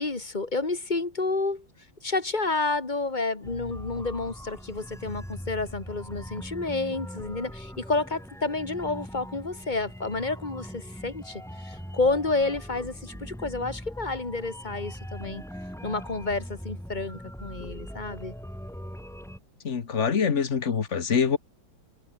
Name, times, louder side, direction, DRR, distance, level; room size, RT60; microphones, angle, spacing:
voice 1, 0.0-1.7 2.0-15.4 15.8-18.3, left 3 dB, 20° left, 2.4 m, -30 dB
sound 1, 3.4-19.4, equal, ahead, 4.1 m, -41 dB
voice 2, 19.6-21.4, left 6 dB, 40° left, 1.5 m, -25 dB
omnidirectional pair, 2.2 m